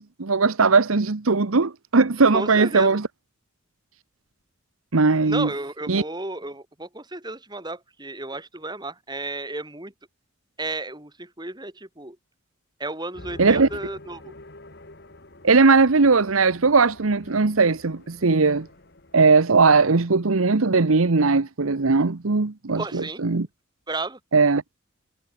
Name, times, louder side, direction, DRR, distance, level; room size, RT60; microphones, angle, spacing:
voice 1, 0.0-3.0 4.9-5.5 5.9-6.0 13.4-13.7 15.4-18.7 19.1-23.5 24.3-24.6, right 4 dB, 85° right, 1.0 m, -19 dB
voice 2, 2.3-2.9 5.2-9.9 10.6-12.2 12.8-14.3 22.7-23.2 23.9-24.2, right 2 dB, 20° right, 4.1 m, -33 dB
sound 1, 13.1-19.2, left 1 dB, 50° left, 2.5 m, -46 dB
head